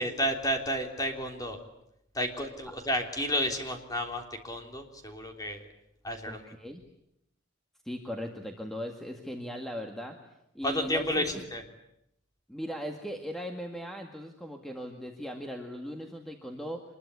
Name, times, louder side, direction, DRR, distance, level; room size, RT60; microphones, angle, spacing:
voice 1, 0.0-1.6 2.1-5.7 6.0-6.4 10.6-11.6, equal, 20° left, 4 dB, 3.4 m, -31 dB
voice 2, 6.3-6.8 7.8-10.2 10.5-11.4 12.5-16.8, equal, ahead, 3 dB, 1.9 m, -38 dB
25.5 x 21.5 x 9.7 m, 0.80 s
head